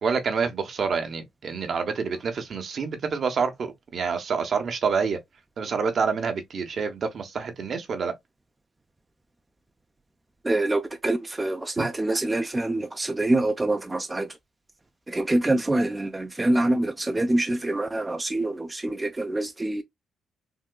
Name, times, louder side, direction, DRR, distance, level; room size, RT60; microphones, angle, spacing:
voice 1, 0.0-5.2 5.6-8.1 11.8-11.9, right 5 dB, 50° right, 0.9 m, -27 dB
voice 2, 10.4-14.3 15.1-19.8, right 2 dB, 15° right, 0.4 m, -25 dB
3.6 x 2.8 x 2.2 m
cardioid pair, 90°, 0 cm